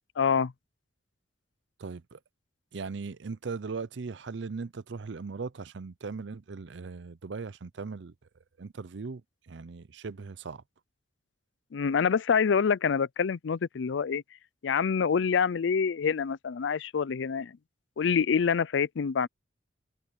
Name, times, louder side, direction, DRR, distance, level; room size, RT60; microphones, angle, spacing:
voice 1, 0.2-0.5 11.7-14.2 14.6-17.6 18.0-19.3, left 6 dB, 70° left, 0.4 m, -26 dB
voice 2, 1.8-2.2 2.7-8.1 8.6-10.6, right 4 dB, 70° right, 0.6 m, -39 dB
head